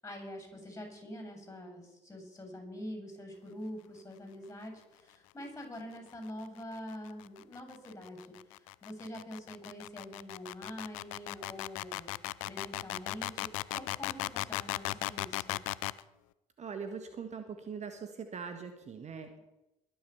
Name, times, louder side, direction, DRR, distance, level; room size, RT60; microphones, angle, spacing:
voice 1, 0.0-12.2 12.4-15.6, equal, 15° left, 4 dB, 7.6 m, -45 dB
sound 1, 6.8-16.0, left 21 dB, 70° left, 0.5 m, -37 dB
voice 2, 16.6-19.3, right 6 dB, 40° right, 7 dB, 1.7 m, -41 dB
22.0 x 7.9 x 7.1 m, 0.99 s
figure-of-eight pair, 50°, 18 cm